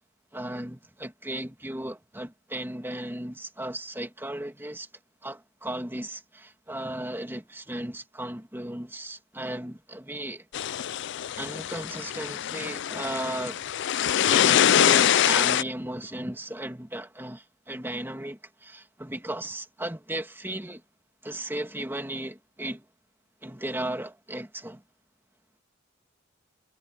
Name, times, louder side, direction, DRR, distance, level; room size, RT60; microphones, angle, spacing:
voice 1, 0.3-4.9 5.2-10.4 11.3-13.6 14.3-20.8 21.2-22.8 23.4-24.8, right 1 dB, 10° right, 2.5 m, -35 dB
sound 1, 10.5-15.6, left 10 dB, 60° left, 0.4 m, -24 dB
head